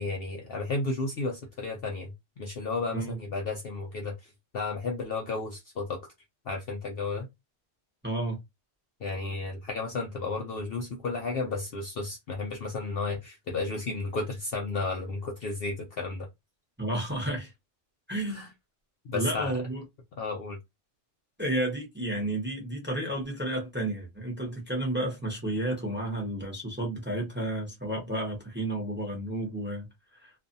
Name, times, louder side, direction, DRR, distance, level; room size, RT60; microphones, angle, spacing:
voice 1, 0.0-6.0 6.5-7.3 9.0-16.3 18.3-18.5 19.0-19.6 20.2-20.6, left 3 dB, 60° left, 0.7 m, -33 dB
voice 2, 8.0-8.4 16.8-17.5 18.1-18.5 19.1-19.8 21.4-30.3, right 1 dB, 10° right, 0.7 m, -32 dB
2.5 x 2.3 x 2.6 m
omnidirectional pair, 1.3 m